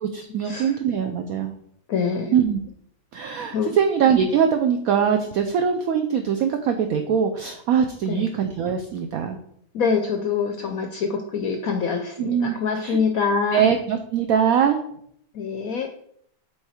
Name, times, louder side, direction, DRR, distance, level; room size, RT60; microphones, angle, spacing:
voice 1, 0.0-1.5 2.3-2.6 3.1-9.4 12.2-13.0 13.5-14.8, right 7 dB, 75° right, 6 dB, 0.8 m, -22 dB
voice 2, 1.9-2.4 3.5-3.7 8.1-8.2 9.7-13.6 15.3-15.9, left 5 dB, 70° left, 4 dB, 0.8 m, -25 dB
7.9 x 3.2 x 4.2 m, 0.69 s
omnidirectional pair, 2.0 m